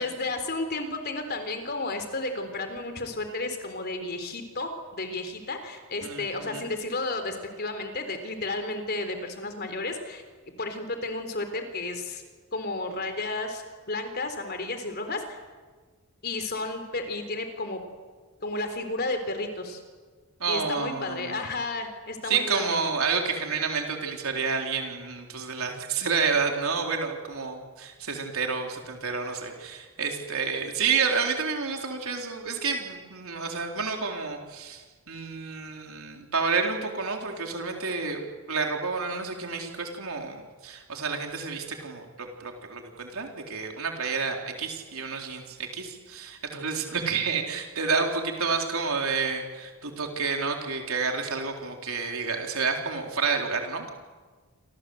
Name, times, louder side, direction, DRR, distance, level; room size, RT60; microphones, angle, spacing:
voice 1, 0.0-12.2 12.5-15.4 16.2-17.8 18.4-19.8 20.5-22.8, left 2 dB, 45° left, 7 dB, 3.9 m, -32 dB
voice 2, 6.0-6.7 20.4-21.4 22.2-38.2 38.5-53.9, right 5 dB, 70° right, 2 dB, 4.0 m, -29 dB
27.5 x 26.0 x 8.0 m, 1.4 s
head